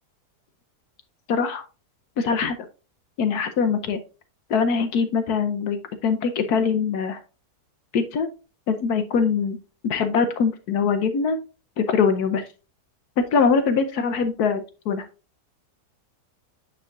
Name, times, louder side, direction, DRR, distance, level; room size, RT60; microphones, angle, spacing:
voice 1, 1.3-1.6 2.2-2.6 3.2-4.0 4.5-5.8 6.0-7.2 7.9-8.3 8.7-11.4 11.8-12.4 13.3-15.0, left 5 dB, 70° left, 9 dB, 1.2 m, -22 dB
8.9 x 4.8 x 2.4 m, 0.31 s
omnidirectional pair, 1.8 m